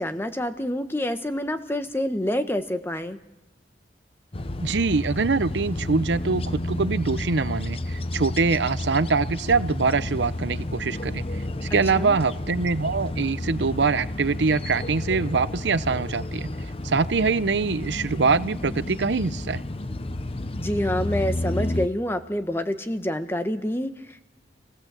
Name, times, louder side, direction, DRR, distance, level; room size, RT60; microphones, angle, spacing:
voice 1, 0.0-3.2 11.9-12.2 20.6-24.3, left 1 dB, 15° left, 9 dB, 1.1 m, -27 dB
sound 1, 4.3-21.9, left 1 dB, 35° left, 0.7 m, -31 dB
voice 2, 4.6-11.4 11.7-16.5 16.8-19.6, right 4 dB, 85° right, 15 dB, 0.7 m, -24 dB
27.5 x 16.0 x 7.5 m, 1.0 s
head